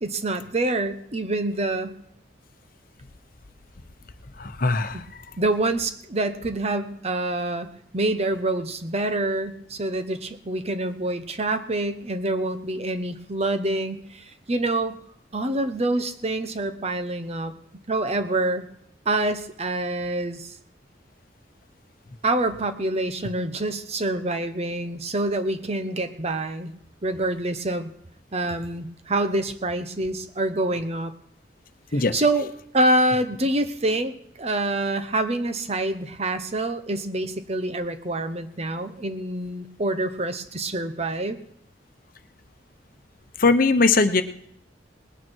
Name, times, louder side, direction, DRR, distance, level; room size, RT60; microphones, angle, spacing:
voice 1, 0.0-1.9 4.9-5.0 5.4-15.0 15.3-17.5 17.9-18.7 19.1-20.5 22.2-26.7 27.0-27.9 28.3-31.1 32.1-32.5 32.7-34.1 34.4-41.4, right 2 dB, 35° right, 9 dB, 0.9 m, -26 dB
voice 2, 4.4-5.0 31.9-32.2 43.4-44.2, left 3 dB, 50° left, 9 dB, 0.9 m, -20 dB
20.0 x 9.3 x 4.6 m, 0.69 s
head